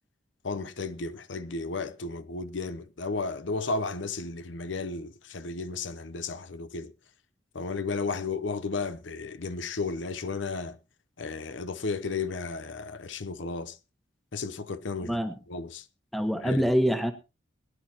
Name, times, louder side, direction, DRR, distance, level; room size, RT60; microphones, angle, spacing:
voice 1, 0.4-6.9 7.5-10.8 11.2-13.8 14.3-15.2 15.5-15.8 16.4-16.6, left 4 dB, 75° left, 0.8 m, -33 dB
voice 2, 15.0-15.4 16.1-17.1, equal, ahead, 1.2 m, -25 dB
21.5 x 10.5 x 2.9 m
head